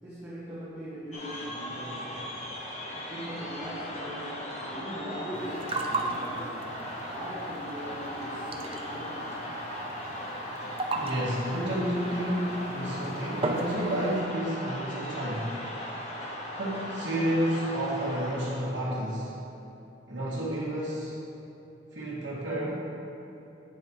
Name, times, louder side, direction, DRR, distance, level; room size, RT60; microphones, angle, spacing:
voice 1, 0.0-2.4 3.1-6.7 7.0-9.6, equal, 15° right, -13 dB, 1.6 m, -40 dB
sound 1, 1.1-18.7, equal, 35° left, 1.0 m, -38 dB
sound 2, 5.3-14.2, right 2 dB, 30° right, 0.5 m, -37 dB
voice 2, 10.9-15.6 16.6-19.3 20.1-21.2 21.9-22.9, right 1 dB, 70° right, -10 dB, 1.3 m, -30 dB
8.8 x 7.9 x 3.0 m, 2.9 s
head